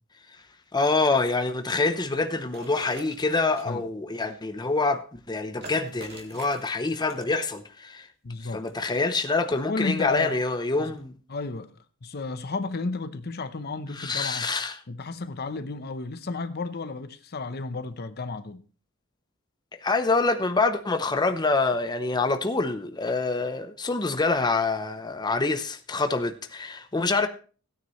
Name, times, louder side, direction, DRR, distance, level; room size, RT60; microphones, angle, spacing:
voice 1, 0.7-8.1 8.5-11.1 14.0-14.8 19.8-27.3, left 3 dB, 20° left, 0.7 m, -26 dB
sound 1, 2.5-3.7 5.6-7.5 8.4-9.0 10.0-10.1 10.9-11.0, right 2 dB, 50° right, 2.4 m, -45 dB
voice 2, 8.2-8.6 9.6-10.4 10.8-10.9 11.3-14.5 14.9-18.6, left 3 dB, 50° left, 0.8 m, -33 dB
16.5 x 9.4 x 3.1 m
head